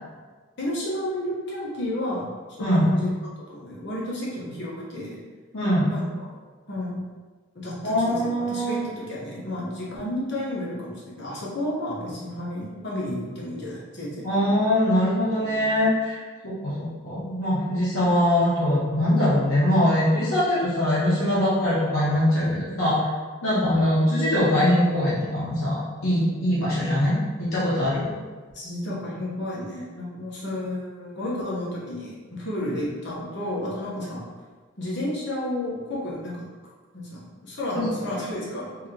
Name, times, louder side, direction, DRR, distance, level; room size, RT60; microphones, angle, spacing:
voice 1, 0.6-3.1 3.5-5.2 5.9-6.4 6.7-7.0 7.5-14.2 23.5-23.7 28.5-34.2 34.8-36.5 36.9-38.9, left 1 dB, 55° left, -5 dB, 1.0 m, -31 dB
voice 2, 2.6-2.9 5.5-5.9 7.8-8.8 14.2-16.1 16.4-23.1 23.4-28.1 37.7-37.8, left 1 dB, 85° left, -9 dB, 0.9 m, -22 dB
3.0 x 2.8 x 3.8 m, 1.4 s
head